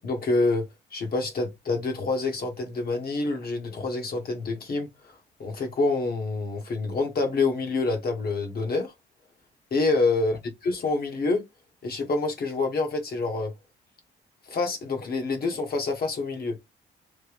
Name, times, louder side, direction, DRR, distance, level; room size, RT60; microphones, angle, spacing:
voice 1, 0.0-0.6 0.9-5.1 5.4-8.9 9.7-10.3 10.6-11.4 11.8-13.5 14.5-16.6, left 3 dB, 50° left, 1.1 m, -27 dB
3.3 x 2.2 x 3.3 m
cardioid pair, 90°, 20 cm